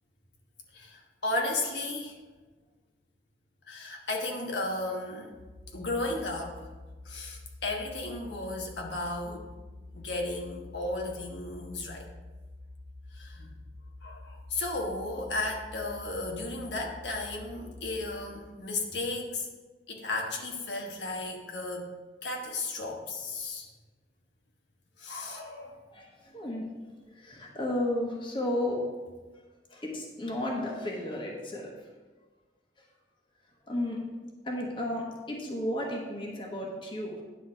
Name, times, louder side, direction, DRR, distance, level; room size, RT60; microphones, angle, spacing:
voice 1, 0.7-2.2 3.7-5.3 5.7-6.6 7.0-9.4 9.9-12.1 13.1-13.5 14.0-19.5 19.9-21.9 22.2-23.7 25.0-25.8, left 2 dB, 80° left, 1 dB, 1.3 m, -34 dB
sound 1, 5.3-18.1, left 2 dB, 60° left, 1.1 m, -48 dB
voice 2, 25.9-26.7 27.1-28.8 29.7-31.8 32.8-32.9 33.7-37.2, left 1 dB, 30° left, -1 dB, 1.2 m, -33 dB
10.0 x 4.1 x 6.0 m, 1.3 s
head